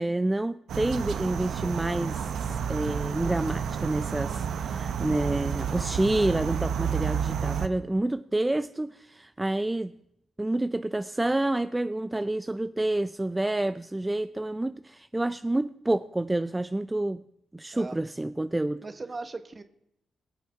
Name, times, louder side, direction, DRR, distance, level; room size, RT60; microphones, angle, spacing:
voice 1, 0.0-9.9 10.4-17.2 17.5-18.8, right 1 dB, 20° right, 12 dB, 0.5 m, -28 dB
sound 1, 0.7-7.7, right 7 dB, 75° right, 0.9 m, -30 dB
voice 2, 18.8-19.6, right 3 dB, 40° right, 9 dB, 1.4 m, -38 dB
20.5 x 7.2 x 4.5 m, 0.78 s
hypercardioid pair, 45°, 0 cm